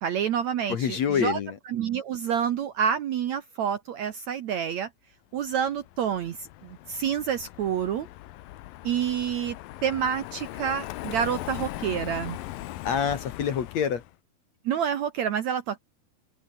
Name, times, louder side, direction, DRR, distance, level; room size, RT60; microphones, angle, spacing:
voice 1, 0.0-1.4 1.7-4.9 5.3-8.1 8.8-9.6 9.8-12.4 14.7-15.8, right 8 dB, 65° right, 1.9 m, -28 dB
voice 2, 0.7-1.6 12.8-14.0, left 7 dB, 55° left, 2.5 m, -26 dB
Car passing by, 5.6-14.1, left 16 dB, 75° left, 2.5 m, -39 dB
open air
omnidirectional pair, 4.4 m